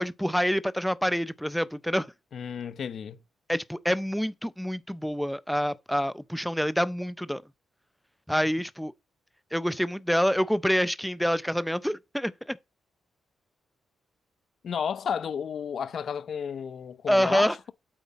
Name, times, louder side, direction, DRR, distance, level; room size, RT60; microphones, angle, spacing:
voice 1, 0.0-2.1 3.5-7.4 8.3-8.9 9.5-12.6 17.1-17.5, equal, ahead, 0.5 m, -27 dB
voice 2, 2.3-3.2 14.6-17.7, left 7 dB, 55° left, 0.8 m, -32 dB
8.2 x 7.3 x 4.1 m
cardioid pair, 115°, 0 cm